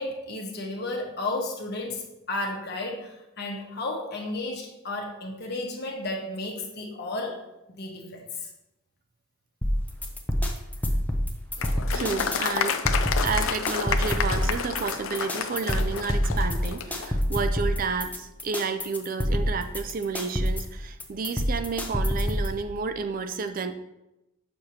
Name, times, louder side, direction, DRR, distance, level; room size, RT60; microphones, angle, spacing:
voice 1, 0.0-7.4 7.7-8.5, left 2 dB, 55° left, 0 dB, 1.2 m, -33 dB
sound 1, 9.6-22.6, equal, 10° left, 0.6 m, -27 dB
Applause, 11.6-17.1, left 7 dB, 80° left, 0.5 m, -30 dB
voice 2, 11.9-12.8 13.2-23.7, right 5 dB, 45° right, 8 dB, 0.4 m, -31 dB
6.5 x 6.3 x 2.9 m, 0.92 s
head